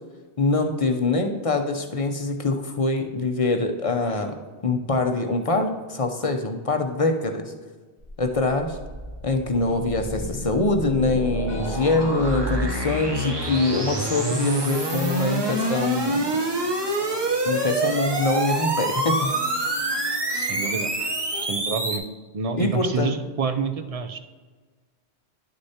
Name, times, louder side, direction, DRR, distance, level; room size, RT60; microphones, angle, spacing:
voice 1, 0.4-4.4 4.6-7.5 8.2-8.8 9.2-16.3 17.4-19.3 22.6-23.2, left 3 dB, 40° left, 5 dB, 0.6 m, -24 dB
sound 1, 8.0-22.0, right 2 dB, 25° right, 0.8 m, -27 dB
sound 2, 11.5-21.5, left 3 dB, 65° left, 1.1 m, -41 dB
voice 2, 20.3-20.9 21.4-22.0 22.3-24.2, right 5 dB, 50° right, 8 dB, 0.5 m, -28 dB
11.0 x 6.5 x 2.8 m, 1.4 s
omnidirectional pair, 1.1 m